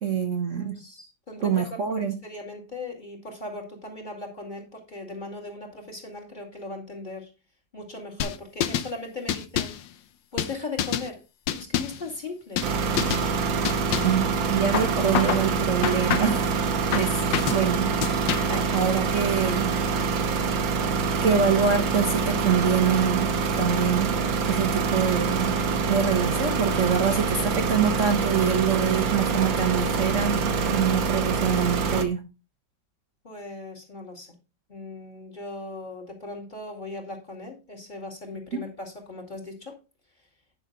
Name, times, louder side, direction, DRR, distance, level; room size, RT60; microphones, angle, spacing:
voice 1, 0.0-0.7 1.4-2.2 14.0-16.5 16.9-17.2 17.5-17.9 18.5-19.7 21.2-23.3 23.6-24.2 24.5-25.5 25.9-32.2 38.5-38.6, right 7 dB, 50° right, 4 dB, 1.2 m, -25 dB
voice 2, 0.5-7.3 7.7-9.9 10.3-11.2 11.5-12.7 33.2-34.4 34.7-39.8, left 2 dB, 25° left, -1 dB, 2.5 m, -38 dB
sound 1, 8.2-8.9 9.3-9.8 10.4-11.1 11.5-12.0 12.6-12.7 13.0-13.3 13.6-14.2 14.7-15.5 15.8-16.4 16.9-17.6 18.0-18.6, left 10 dB, 80° left, 1.4 m, -27 dB
sound 2, 12.6-32.0, right 5 dB, 85° right, 1.9 m, -25 dB
10.0 x 6.3 x 3.9 m, 0.29 s
omnidirectional pair, 2.0 m